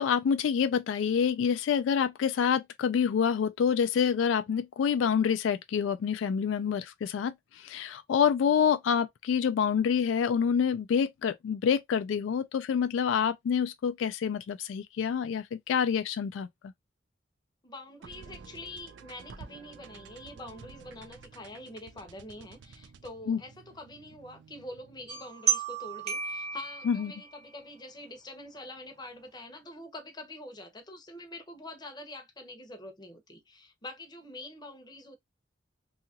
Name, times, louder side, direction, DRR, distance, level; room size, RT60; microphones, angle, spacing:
voice 1, 0.0-16.5 23.3-23.4 26.8-27.1, left 7 dB, 90° left, 0.3 m, -27 dB
voice 2, 17.6-35.2, left 1 dB, 25° left, 0.7 m, -45 dB
sound 1, 18.0-25.3, right 5 dB, 70° right, 0.4 m, -51 dB
sound 2, 25.1-27.5, right 6 dB, 40° right, 0.8 m, -32 dB
2.8 x 2.3 x 2.7 m
head